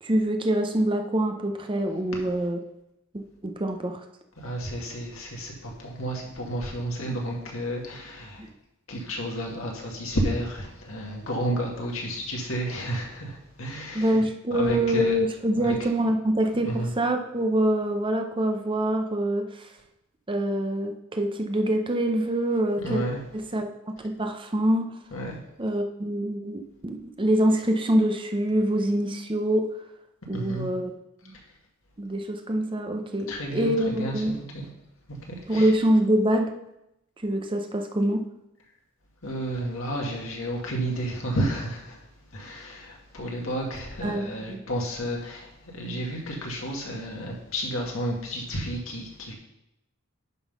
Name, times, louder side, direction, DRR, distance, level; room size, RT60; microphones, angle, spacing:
voice 1, 0.0-2.6 3.4-4.0 8.4-8.5 13.9-19.7 20.3-23.0 23.5-23.7 24.0-24.9 25.6-29.7 30.3-30.9 31.3-31.4 32.0-34.3 35.5-36.5 37.2-38.2 44.0-44.6, right 1 dB, 25° right, 5 dB, 0.7 m, -25 dB
voice 2, 4.4-8.4 8.9-14.3 14.5-15.2 15.5-15.8 16.6-16.9 22.8-23.2 25.1-25.4 30.3-30.7 31.2-31.4 33.3-34.7 35.1-35.7 39.2-49.3, right 1 dB, 75° left, -1 dB, 2.0 m, -31 dB
10.5 x 3.9 x 5.4 m, 0.87 s
head